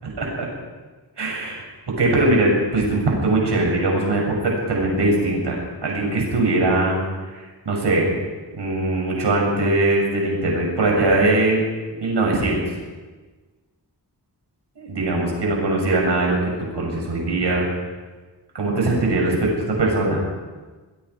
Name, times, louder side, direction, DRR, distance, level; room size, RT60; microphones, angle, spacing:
voice 1, 1.2-1.6 2.0-7.0 7.3-8.1 8.6-11.6 12.0-12.7 14.8-16.4 16.7-17.7 18.5-20.2, right 2 dB, 85° right, -1 dB, 7.9 m, -21 dB
23.5 x 23.0 x 5.0 m, 1.3 s
cardioid pair, 65°, 40 cm